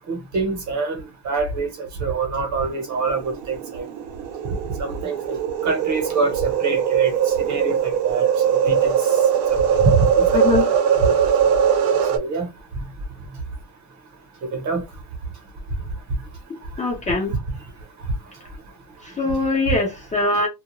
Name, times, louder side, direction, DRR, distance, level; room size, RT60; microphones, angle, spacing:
voice 1, 0.1-3.8 4.8-5.4 5.6-9.1 9.5-11.1 12.1-12.5 14.5-14.8, right 4 dB, 40° right, 1.0 m, -25 dB
sound 1, 3.1-12.2, right 8 dB, 60° right, 0.7 m, -20 dB
voice 2, 10.3-10.7 16.8-17.3 19.0-20.5, left 3 dB, 15° left, 0.6 m, -22 dB
2.4 x 2.3 x 3.0 m
cardioid pair, 165°, 44 cm